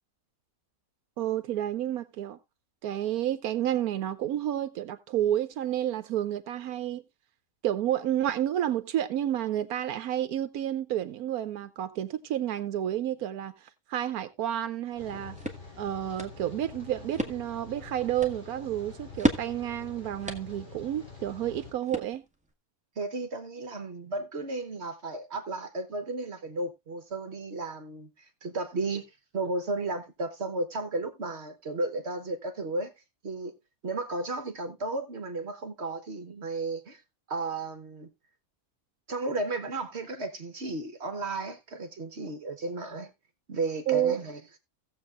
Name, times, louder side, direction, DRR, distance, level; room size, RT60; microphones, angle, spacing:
voice 1, 1.2-2.4 2.8-7.0 7.6-15.4 15.8-22.2 43.9-44.2, right 11 dB, 85° right, 1.2 m, -30 dB
sound 1, 14.9-22.5, right 1 dB, 5° right, 1.2 m, -36 dB
Rain, 15.0-21.7, left 4 dB, 35° left, 3.5 m, -46 dB
voice 2, 23.0-29.0 29.3-32.9 33.2-33.5 33.8-37.0 37.3-38.1 39.1-43.1 43.5-44.4, right 2 dB, 50° right, 1.3 m, -34 dB
17.5 x 7.3 x 2.5 m
omnidirectional pair, 1.5 m